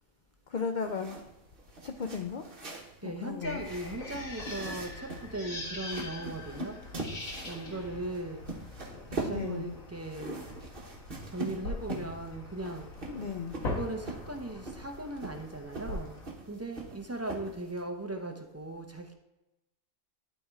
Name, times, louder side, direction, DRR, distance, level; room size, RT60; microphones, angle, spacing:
voice 1, 0.5-1.2 1.8-2.4 3.0-3.7 9.3-9.7 13.1-13.5, left 5 dB, 60° left, 5 dB, 0.5 m, -35 dB
sound 1, 0.8-17.8, right 2 dB, 45° right, 1.4 m, -43 dB
voice 2, 3.0-6.8 7.5-8.4 9.1-10.4 11.3-12.9 13.6-19.1, right 2 dB, 25° right, 4 dB, 0.3 m, -38 dB
sound 2, 3.4-16.3, left 2 dB, 80° left, 2.1 m, -42 dB
sound 3, 5.5-5.8 6.2-6.5 6.9-7.2 7.7-8.0 9.4-9.8 10.3-10.6 11.1-11.4 11.9-12.3, right 1 dB, 5° left, 0.8 m, -54 dB
12.0 x 4.3 x 3.5 m, 0.98 s
omnidirectional pair, 1.4 m